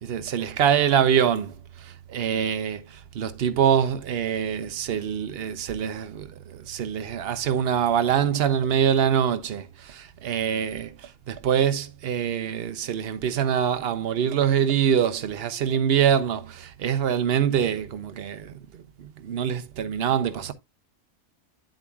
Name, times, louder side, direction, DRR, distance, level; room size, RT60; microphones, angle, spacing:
voice 1, 0.0-20.5, right 8 dB, 55° right, 0.9 m, -25 dB
8.7 x 7.7 x 2.4 m
omnidirectional pair, 1.3 m